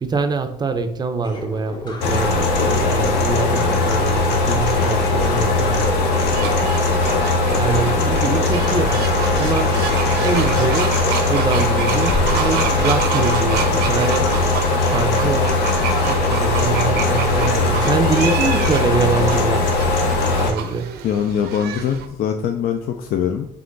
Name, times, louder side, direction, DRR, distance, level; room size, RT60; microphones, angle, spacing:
voice 1, 0.0-5.9 7.5-9.9 10.2-14.5 14.8-15.6 16.0-19.7 20.4-20.9, right 4 dB, 25° right, 0.5 m, -24 dB
sound 1, 1.2-18.3, left 1 dB, 25° left, 0.8 m, -34 dB
sound 2, 2.0-20.5, left 3 dB, 80° left, 0.9 m, -19 dB
sound 3, 6.3-22.1, right 8 dB, 75° right, 0.6 m, -29 dB
voice 2, 21.0-23.5, left 8 dB, 60° left, 0.4 m, -22 dB
3.6 x 3.4 x 3.8 m
cardioid pair, 110°, 17 cm